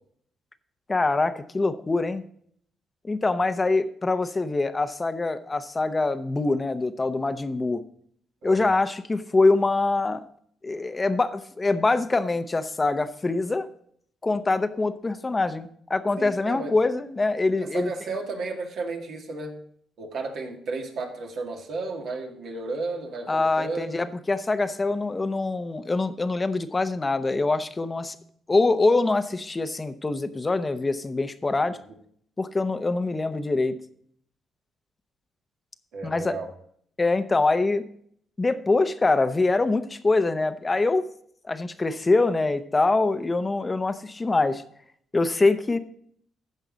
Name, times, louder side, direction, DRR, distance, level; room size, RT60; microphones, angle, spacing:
voice 1, 0.9-2.2 3.0-7.8 8.4-10.2 10.6-13.7 14.2-17.9 23.3-28.1 28.5-31.8 32.4-33.8 36.0-36.3 37.0-37.8 38.4-41.1 41.5-44.6 45.1-45.8, left 3 dB, 25° left, 11 dB, 0.8 m, -24 dB
voice 2, 16.2-16.7 17.6-19.6 20.0-24.0 31.7-31.8 35.9-36.5, right 3 dB, 70° right, 1 dB, 2.0 m, -33 dB
14.5 x 5.5 x 3.9 m, 0.63 s
cardioid pair, 90°, 0 cm